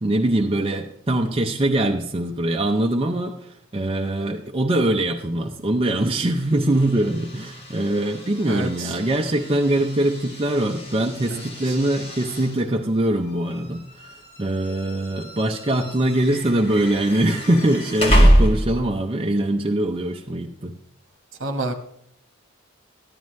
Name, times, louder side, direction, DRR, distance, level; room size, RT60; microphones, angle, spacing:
voice 1, 0.0-20.7, right 1 dB, 25° right, 2 dB, 0.5 m, -23 dB
sound 1, 6.2-19.0, equal, 30° left, 2.0 m, -26 dB
voice 2, 8.5-9.0 11.3-11.8 21.4-21.7, right 2 dB, 65° right, 6 dB, 1.2 m, -29 dB
13.5 x 11.0 x 3.1 m, 0.73 s
head